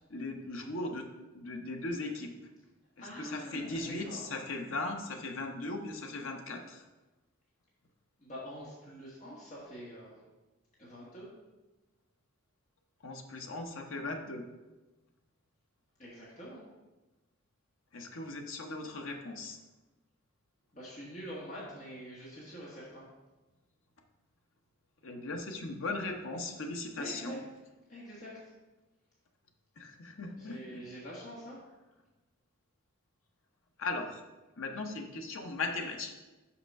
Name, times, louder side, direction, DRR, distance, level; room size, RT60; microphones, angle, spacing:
voice 1, 0.1-1.1 1.3-2.3 3.0-6.8 13.0-14.4 17.9-19.6 25.0-27.4 29.8-30.8 33.8-34.2 34.6-36.1, left 2 dB, 70° left, 3 dB, 0.9 m, -38 dB
voice 2, 3.0-4.2 8.2-10.2 10.8-11.3 16.0-16.6 20.7-23.0 27.0-27.4 27.9-28.4 30.4-31.6, equal, 35° left, -6 dB, 1.5 m, -45 dB
5.8 x 5.6 x 5.3 m, 1.1 s
head